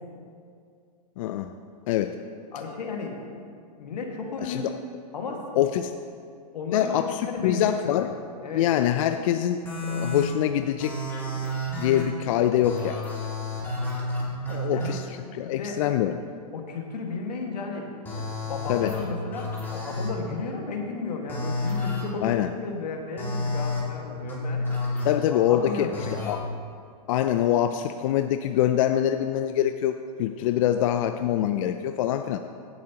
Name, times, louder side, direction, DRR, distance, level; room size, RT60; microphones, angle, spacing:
voice 1, 1.2-1.5 1.9-2.2 4.4-4.7 5.6-5.9 6.7-8.1 8.5-9.6 9.9-10.9 11.3-11.5 11.8-13.0 14.5-16.3 18.7-18.9 22.2-22.5 25.0-25.9 26.3-26.4 27.1-32.4, left 11 dB, 55° left, 8 dB, 0.4 m, -24 dB
voice 2, 2.5-3.2 3.8-4.8 5.1-5.6 6.5-8.1 8.4-8.7 14.5-15.0 15.5-15.8 16.5-24.9 25.3-26.2, left 4 dB, 85° left, 1 dB, 1.8 m, -34 dB
sound 1, 9.7-10.3 10.8-12.0 12.6-14.9 18.0-19.0 19.3-20.1 21.3-22.0 23.2-23.8 24.2-25.0 25.9-26.3, left 2 dB, 10° left, 2.3 m, -30 dB
16.5 x 8.2 x 2.9 m, 2.3 s
hypercardioid pair, 130°, 21 cm